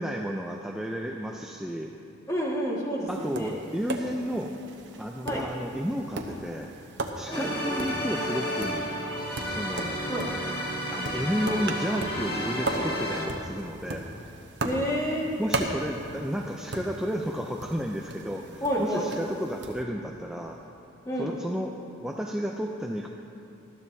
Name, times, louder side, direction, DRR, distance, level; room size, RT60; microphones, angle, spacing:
voice 1, 0.0-1.9 3.1-4.6 5.0-6.7 7.2-8.9 9.5-10.0 10.9-14.1 15.4-20.6 21.2-23.1, equal, 5° right, 0 dB, 0.4 m, -32 dB
voice 2, 2.3-3.5 5.3-5.4 7.3-7.5 10.1-10.3 14.6-15.3 18.6-19.1 21.1-21.3, equal, 15° left, -5 dB, 1.8 m, -29 dB
Tap, 3.1-19.8, right 2 dB, 55° right, 0.9 m, -38 dB
sound 1, 7.3-13.3, equal, 50° left, 1.5 m, -31 dB
19.5 x 13.0 x 2.7 m, 2.7 s
head